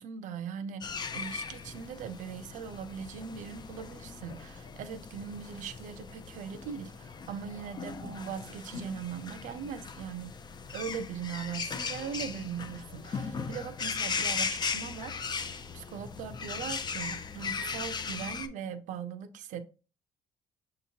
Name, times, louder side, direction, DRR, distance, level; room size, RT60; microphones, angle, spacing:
voice 1, 0.0-10.4 10.7-19.6, right 7 dB, 75° right, 0.5 m, -40 dB
sound 1, 0.8-18.5, left 5 dB, 35° left, 0.5 m, -38 dB
6.5 x 2.8 x 2.7 m
cardioid pair, 90°, 13 cm